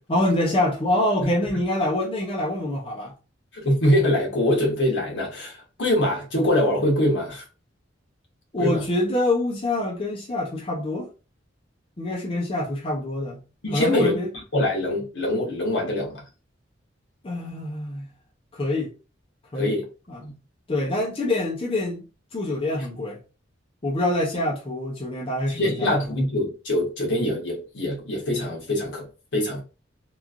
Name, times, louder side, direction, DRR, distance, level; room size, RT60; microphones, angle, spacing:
voice 1, 0.1-3.1 8.5-11.1 12.0-13.4 13.7-14.3 17.2-18.1 18.5-18.9 19.5-19.8 20.1-20.3 20.7-22.0 22.3-23.2 23.8-25.9, left 1 dB, 30° left, 0.6 m, -25 dB
voice 2, 3.5-7.5 8.6-8.9 13.6-14.2 14.5-16.2 19.5-19.8 20.2-20.3 25.5-29.6, left 1 dB, 70° left, 1.1 m, -23 dB
3.0 x 2.4 x 2.4 m
head